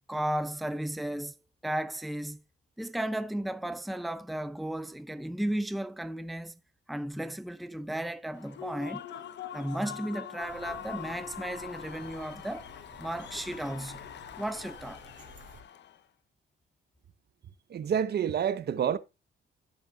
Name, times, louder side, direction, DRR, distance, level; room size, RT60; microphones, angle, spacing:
voice 1, 0.1-1.3 1.6-2.4 2.8-6.6 6.9-9.0 9.5-12.7 13.0-14.0 14.4-15.0, right 1 dB, ahead, 0.7 m, -34 dB
Human voice / Cheering / Applause, 8.3-16.0, left 10 dB, 60° left, 1.0 m, -43 dB
sound 1, 10.4-15.6, right 2 dB, 40° right, 3.0 m, -53 dB
voice 2, 17.7-19.0, right 8 dB, 55° right, 0.9 m, -28 dB
14.0 x 6.7 x 2.4 m
cardioid pair, 90°, 20 cm